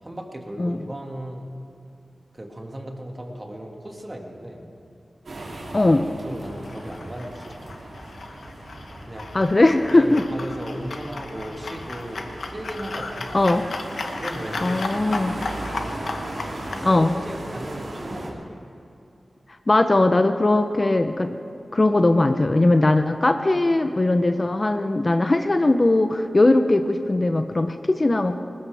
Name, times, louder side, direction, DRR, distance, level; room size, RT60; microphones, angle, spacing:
voice 1, 0.0-1.5 2.3-4.7 6.2-7.7 9.1-9.4 9.9-13.4 14.1-15.7 16.7-18.5, right 1 dB, 25° right, 1 dB, 2.1 m, -36 dB
sound 1, 5.3-18.3, right 1 dB, 80° right, 3.0 m, -37 dB
voice 2, 5.7-6.1 9.3-10.2 13.3-13.6 14.6-15.4 16.8-17.1 19.7-21.4 21.7-28.4, left 2 dB, 35° left, 7 dB, 0.7 m, -19 dB
sound 2, 6.4-16.9, left 3 dB, 85° left, 1.1 m, -35 dB
20.5 x 20.0 x 3.5 m, 2.6 s
wide cardioid pair, 80°, 0 cm